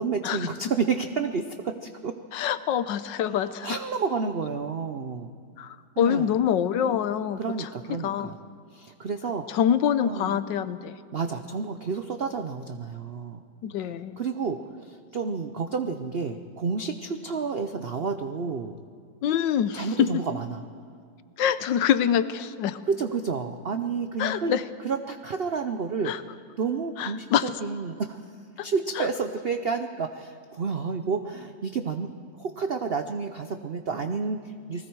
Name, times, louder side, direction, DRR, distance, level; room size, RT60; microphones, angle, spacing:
voice 1, 0.0-2.1 3.5-5.3 6.0-6.4 7.4-8.4 8.7-9.6 10.0-10.4 11.1-13.4 13.8-18.8 19.7-20.6 22.9-24.5 24.8-26.3 26.6-28.2 28.6-32.1 32.4-34.9, right 5 dB, 75° right, 7 dB, 0.5 m, -30 dB
voice 2, 2.3-3.7 5.6-7.7 8.0-8.3 9.5-11.0 13.6-14.2 19.2-20.1 21.4-22.8 24.2-24.6 26.1-26.2 27.0-27.5 28.6-28.7, left 9 dB, 75° left, 13 dB, 1.4 m, -25 dB
29.5 x 20.0 x 4.7 m, 2.3 s
omnidirectional pair, 2.0 m